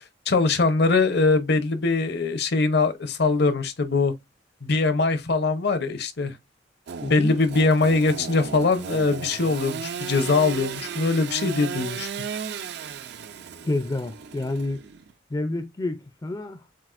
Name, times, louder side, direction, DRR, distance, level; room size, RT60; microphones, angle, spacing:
voice 1, 0.3-4.1 4.6-6.3 7.1-12.1, left 3 dB, 60° left, 0.7 m, -22 dB
Engine / Sawing, 6.9-15.1, right 6 dB, 60° right, 0.4 m, -35 dB
voice 2, 7.0-7.4 13.6-14.8 15.3-16.6, left 2 dB, 20° left, 0.4 m, -29 dB
7.4 x 2.5 x 2.4 m
head